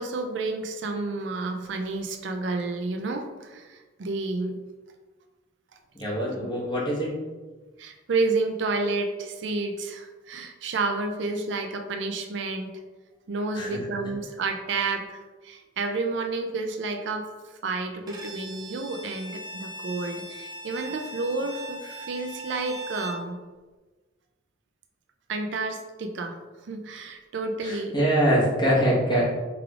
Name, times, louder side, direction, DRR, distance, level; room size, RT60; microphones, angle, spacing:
voice 1, 0.0-4.6 6.5-6.6 7.8-12.7 13.3-23.4 25.3-26.4 26.6-27.9, right 3 dB, 65° right, 5 dB, 0.4 m, -30 dB
voice 2, 5.9-7.1 13.5-13.8 27.6-29.2, equal, 25° left, -6 dB, 1.2 m, -24 dB
Bowed string instrument, 18.1-23.3, right 1 dB, 20° right, 0.6 m, -39 dB
4.7 x 3.3 x 2.4 m, 1.3 s
head